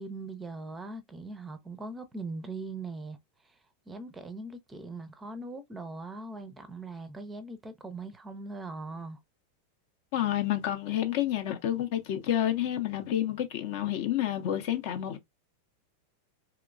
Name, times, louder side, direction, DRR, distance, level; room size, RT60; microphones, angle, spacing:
voice 1, 0.0-3.2 3.4-3.6 3.9-9.2, right 3 dB, 15° right, 0.5 m, -40 dB
voice 2, 10.1-15.2, left 11 dB, 50° left, 0.5 m, -29 dB
3.0 x 2.9 x 2.3 m
figure-of-eight pair, 90°, 0 cm